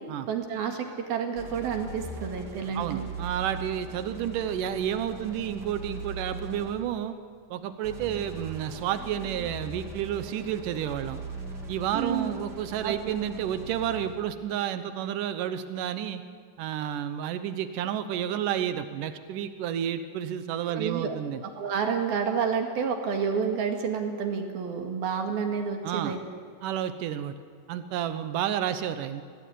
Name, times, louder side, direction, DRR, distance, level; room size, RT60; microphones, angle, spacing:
voice 1, 0.3-3.1 11.9-12.4 12.8-13.0 20.7-21.2 21.4-26.2, right 6 dB, 60° right, 3 dB, 3.8 m, -29 dB
sound 1, 1.3-7.0 7.8-14.2, right 2 dB, 30° right, 2.4 m, -40 dB
voice 2, 2.7-7.1 7.5-11.2 11.7-16.2 16.6-21.4 25.8-26.2 26.6-27.3 27.7-29.2, right 10 dB, 80° right, 10 dB, 1.9 m, -31 dB
25.0 x 18.0 x 9.3 m, 2.2 s
omnidirectional pair, 5.0 m